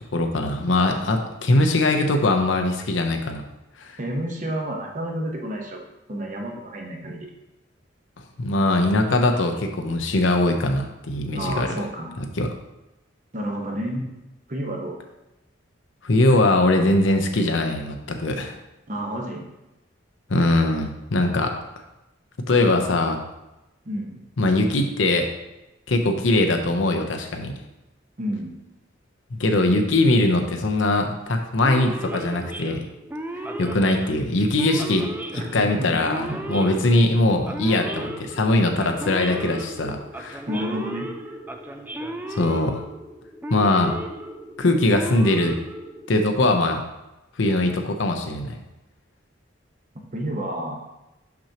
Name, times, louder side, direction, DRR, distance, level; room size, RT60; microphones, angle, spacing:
voice 1, 0.1-3.4 3.8-4.0 8.4-11.7 12.4-12.5 16.0-18.5 20.3-21.5 22.5-23.2 24.4-25.3 25.9-27.5 29.3-32.8 33.6-35.1 35.3-40.4 42.3-42.8 43.5-44.0 44.6-45.5 46.1-46.8 47.4-48.6, left 2 dB, 70° left, 4 dB, 0.7 m, -21 dB
voice 2, 4.0-5.8 6.1-7.3 11.3-12.1 13.3-14.1 14.5-15.0 18.9-19.5 23.8-24.2 28.2-28.5 35.3-36.4 40.5-41.1 50.1-50.8, equal, 40° right, 1 dB, 1.0 m, -30 dB
Male speech man speaking / Siren, 31.6-46.4, right 1 dB, 10° right, 0.3 m, -35 dB
6.2 x 6.0 x 2.9 m, 0.96 s
head